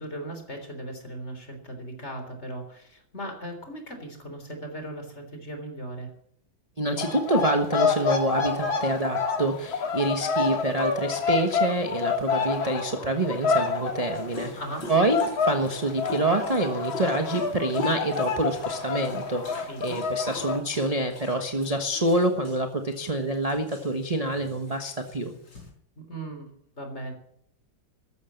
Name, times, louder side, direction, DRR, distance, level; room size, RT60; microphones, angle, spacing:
voice 1, 0.0-6.1 14.6-14.9 19.6-20.0 26.0-27.1, right 1 dB, 35° left, 5 dB, 3.8 m, -38 dB
voice 2, 6.8-14.6 14.9-25.3, right 1 dB, 20° right, 5 dB, 1.2 m, -27 dB
sound 1, 7.0-14.8 15.1-20.6, left 5 dB, 85° left, 3.0 m, -28 dB
Dog, 14.1-25.7, left 2 dB, 70° left, 5.9 m, -43 dB
14.0 x 12.5 x 7.4 m, 0.68 s
omnidirectional pair, 2.1 m